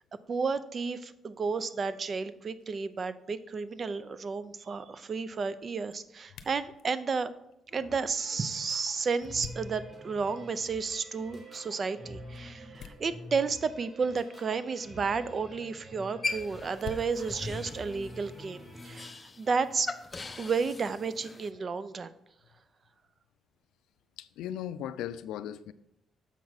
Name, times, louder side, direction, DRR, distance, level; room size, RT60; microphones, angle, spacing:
voice 1, 0.3-7.3 7.7-19.9 20.4-22.1, right 5 dB, 45° right, 0.5 m, -32 dB
sound 1, 3.8-18.7, left 6 dB, 70° left, 0.7 m, -54 dB
sound 2, 7.7-19.1, equal, 25° right, 2.4 m, -48 dB
sound 3, 16.2-21.5, left 3 dB, 25° left, 0.5 m, -40 dB
voice 2, 24.2-25.7, left 10 dB, 90° left, 0.4 m, -37 dB
7.3 x 5.8 x 4.0 m
cardioid pair, 90°, 0 cm